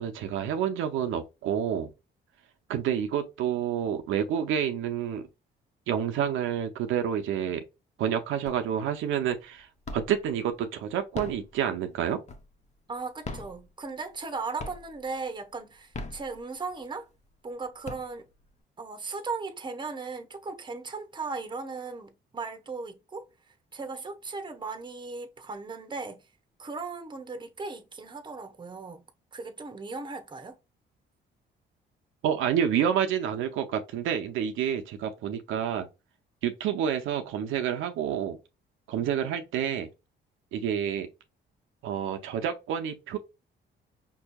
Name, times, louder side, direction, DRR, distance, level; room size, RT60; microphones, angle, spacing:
voice 1, 0.0-1.9 2.7-5.3 5.9-7.6 8.0-9.7 9.9-12.2 32.2-35.9 36.4-38.4 38.9-39.9 40.5-41.1 41.8-43.2, right 9 dB, 85° right, 0.5 m, -28 dB
sound 1, 8.5-9.0 9.3-10.3 11.0-12.7 13.1-14.3 14.6-15.1 15.7-16.8 17.3-17.4 17.7-18.6, left 3 dB, 35° left, 0.6 m, -40 dB
voice 2, 12.9-17.1 17.4-18.3 18.8-23.3 23.7-26.2 26.6-29.0 29.3-30.6, right 4 dB, 25° right, 0.8 m, -37 dB
5.4 x 2.6 x 2.2 m
cardioid pair, 90°, 20 cm